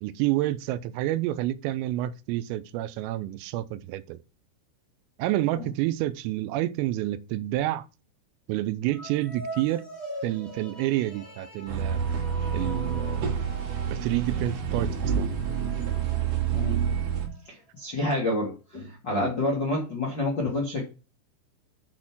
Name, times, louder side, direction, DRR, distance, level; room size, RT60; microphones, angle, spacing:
voice 1, 0.0-4.2 5.2-7.9 8.5-9.8 10.2-12.0 12.5-13.3 13.9-15.3 19.1-19.3, right 15 dB, 85° right, 3.3 m, -29 dB
sound 1, 8.9-17.4, right 1 dB, 30° left, 1.2 m, -43 dB
sound 2, 11.7-17.3, right 7 dB, 60° right, 3.6 m, -28 dB
voice 2, 17.5-20.8, left 2 dB, 90° left, 0.9 m, -28 dB
6.7 x 6.4 x 5.9 m
omnidirectional pair, 5.8 m